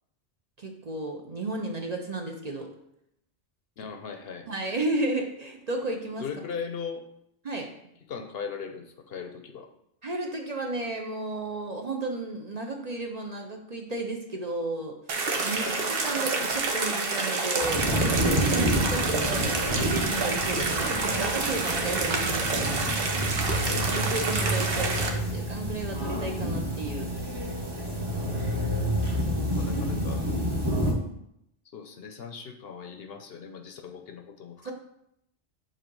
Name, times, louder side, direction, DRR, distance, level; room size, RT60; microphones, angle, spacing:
voice 1, 0.6-2.7 4.5-6.2 7.4-7.7 10.0-22.7 23.5-27.1 29.2-29.6 30.8-30.9 34.6-34.7, right 2 dB, 45° right, 2 dB, 0.7 m, -33 dB
voice 2, 3.8-4.5 6.2-7.1 8.1-9.7 15.6-15.8 20.8-21.8 29.5-30.3 31.7-34.7, left 6 dB, 65° left, 5 dB, 0.8 m, -39 dB
sound 1, 15.1-25.1, right 3 dB, 60° right, 1.0 m, -28 dB
sound 2, 17.6-30.9, equal, 20° right, 1.1 m, -29 dB
7.5 x 2.8 x 5.3 m, 0.76 s
omnidirectional pair, 1.2 m